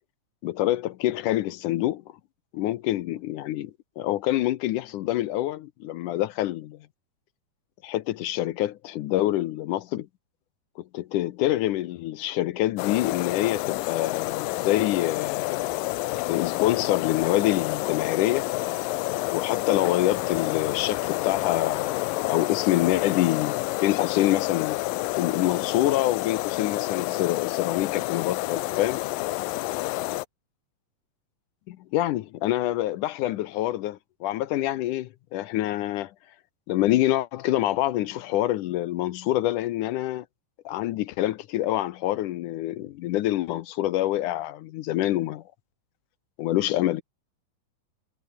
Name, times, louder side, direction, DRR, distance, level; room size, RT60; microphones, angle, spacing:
voice 1, 0.4-2.0 2.5-6.9 7.8-10.1 10.8-15.6 16.3-18.5 19.3-29.0 31.7-36.1 36.7-40.3 40.7-45.4 46.4-47.0, left 14 dB, 75° left, 2.2 m, -26 dB
sound 1, 12.8-30.3, left 20 dB, 90° left, 2.3 m, -29 dB
omnidirectional pair, 4.0 m